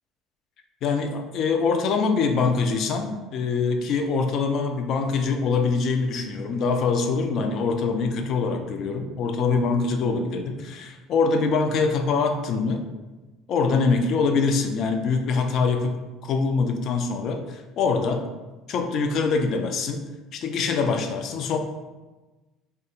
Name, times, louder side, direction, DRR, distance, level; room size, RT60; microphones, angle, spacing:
voice 1, 0.8-12.8 13.5-16.0 16.2-18.2 18.7-20.0 20.3-21.6, left 4 dB, 55° left, 5 dB, 0.3 m, -24 dB
2.3 x 2.2 x 2.8 m, 1.2 s
supercardioid pair, 80°, 0 cm